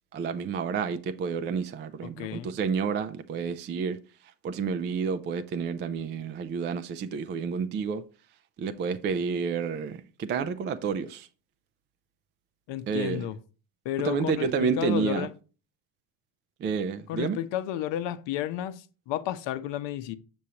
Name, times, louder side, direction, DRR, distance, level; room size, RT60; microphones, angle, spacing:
voice 1, 0.1-4.0 4.4-8.0 8.6-11.3 12.9-13.2 14.0-15.3 16.6-17.4, right 6 dB, 25° right, 0.3 m, -30 dB
voice 2, 2.0-2.5 12.7-13.4 13.8-15.3 17.1-20.2, left 11 dB, 60° left, 0.8 m, -32 dB
7.0 x 6.2 x 2.8 m
cardioid pair, 110°, 49 cm